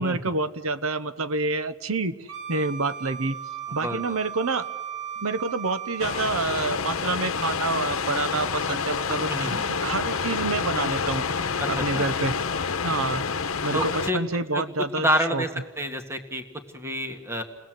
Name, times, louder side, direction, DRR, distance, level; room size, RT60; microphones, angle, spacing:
voice 1, 0.0-3.4 3.7-4.7 5.2-11.2 11.7-12.3 12.8-13.2 13.6-15.4, right 3 dB, 90° right, 13 dB, 0.9 m, -28 dB
Wind instrument woodwind instrument, 2.3-6.4, right 8 dB, 65° right, 3.0 m, -36 dB
voice 2, 3.8-4.2 9.3-9.6 11.6-12.0 13.7-14.2 14.5-14.6 14.9-15.5 15.8-16.4 16.7-17.4, equal, 10° right, 5 dB, 1.7 m, -28 dB
sound 1, 6.0-14.1, left 5 dB, 80° left, 1.0 m, -28 dB
29.5 x 20.0 x 7.6 m, 1.3 s
head